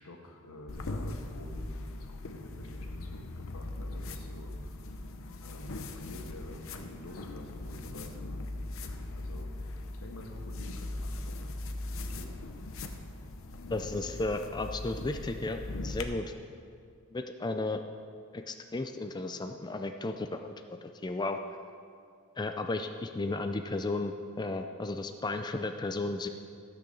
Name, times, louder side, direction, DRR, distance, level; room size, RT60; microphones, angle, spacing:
voice 1, 0.0-4.5 5.4-8.4 9.1-11.6 11.9-12.3, left 1 dB, 85° left, 2 dB, 1.4 m, -49 dB
sound 1, 0.7-16.0, left 2 dB, 65° left, 0.8 m, -40 dB
voice 2, 13.7-16.3 17.1-17.8 18.3-20.5 21.0-21.4 22.4-26.3, left 2 dB, 20° left, 6 dB, 0.4 m, -34 dB
13.5 x 6.2 x 7.0 m, 2.2 s
head